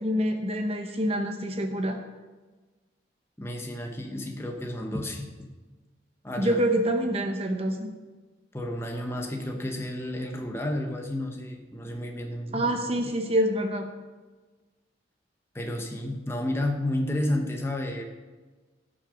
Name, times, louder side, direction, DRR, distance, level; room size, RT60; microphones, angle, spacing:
voice 1, 0.0-2.0 6.4-7.9 12.5-13.9, equal, 30° right, 5 dB, 0.9 m, -26 dB
voice 2, 3.4-5.5 6.2-6.6 8.5-12.7 13.0-13.1 15.5-18.0, left 1 dB, 15° left, 2 dB, 1.0 m, -31 dB
16.5 x 6.3 x 5.2 m, 1.3 s
head